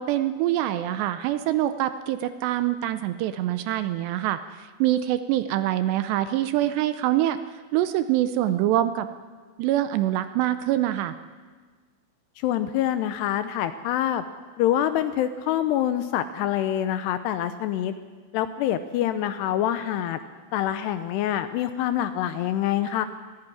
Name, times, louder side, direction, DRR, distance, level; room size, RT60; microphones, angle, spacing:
voice 1, 0.0-7.4 7.7-9.1 9.6-11.2, right 13 dB, 80° right, 11 dB, 2.5 m, -25 dB
voice 2, 12.4-14.2 14.6-18.0 18.3-20.2 20.5-23.1, left 11 dB, 85° left, 10 dB, 2.4 m, -25 dB
27.5 x 10.5 x 10.0 m, 1.5 s
omnidirectional pair, 5.7 m